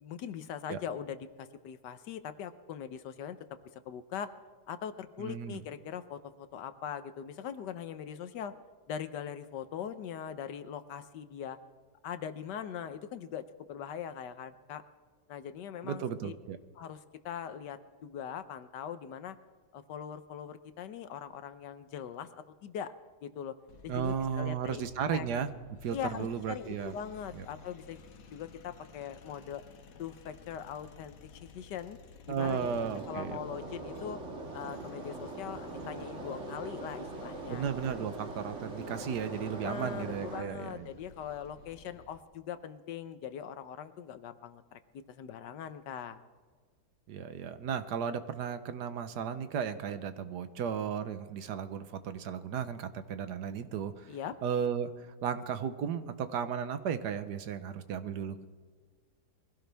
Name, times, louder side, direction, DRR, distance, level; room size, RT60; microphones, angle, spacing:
voice 1, 0.0-3.4 3.8-4.3 4.7-8.5 8.9-11.6 12.0-14.8 15.3-16.3 16.8-17.0 17.2-19.4 19.7-22.9 23.2-23.5 23.8-24.8 25.1-25.2 25.9-29.6 30.0-32.0 32.3-32.7 33.1-34.2 34.5-37.7 39.5-44.8 45.1-46.2 54.1-54.3, left 8 dB, 75° left, 11 dB, 1.4 m, -41 dB
voice 2, 5.2-5.6 15.8-16.6 23.9-25.5 25.8-26.9 27.3-27.5 32.3-33.4 37.5-40.9 47.1-54.2 54.4-58.4, right 7 dB, 70° right, 11 dB, 1.4 m, -35 dB
sound 1, 23.7-42.2, left 4 dB, 60° left, 1.3 m, -54 dB
sound 2, 32.4-40.4, right 2 dB, 45° right, 2.0 m, -42 dB
22.5 x 16.5 x 3.4 m, 1.5 s
omnidirectional pair, 1.9 m